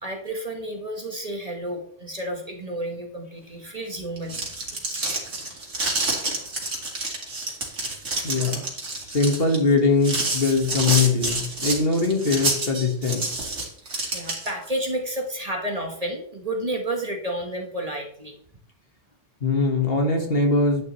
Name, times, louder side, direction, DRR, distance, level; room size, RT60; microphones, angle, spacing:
voice 1, 0.0-4.4 4.7-5.1 13.8-18.4, right 1 dB, 30° right, 2 dB, 1.4 m, -31 dB
sound 1, 4.1-14.7, right 2 dB, 75° right, 2.6 m, -28 dB
voice 2, 8.2-8.6 9.1-13.3 19.4-20.8, left 3 dB, 50° left, 2 dB, 1.9 m, -21 dB
11.0 x 9.5 x 3.2 m, 0.64 s
omnidirectional pair, 1.2 m